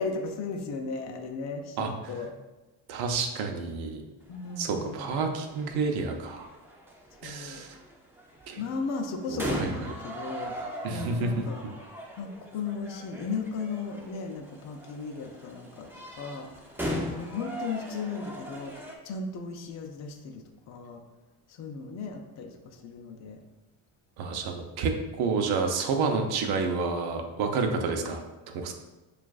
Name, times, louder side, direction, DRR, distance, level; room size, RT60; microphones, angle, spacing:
voice 1, 0.0-2.3 4.3-5.2 7.2-7.6 8.6-10.5 10.9-11.6 12.2-15.9 16.2-16.6 16.9-21.0 21.5-23.4, left 4 dB, 40° left, 3 dB, 0.5 m, -36 dB
voice 2, 1.8-2.3 2.9-4.0 4.6-6.5 7.2-7.7 8.5-8.6 9.3-9.7 10.8-11.3 24.2-28.2 28.5-28.7, right 4 dB, 60° right, 4 dB, 0.7 m, -29 dB
sound 1, 4.2-19.0, right 1 dB, 5° right, 0.5 m, -40 dB
7.2 x 2.5 x 2.3 m, 1.1 s
cardioid pair, 125°, 43 cm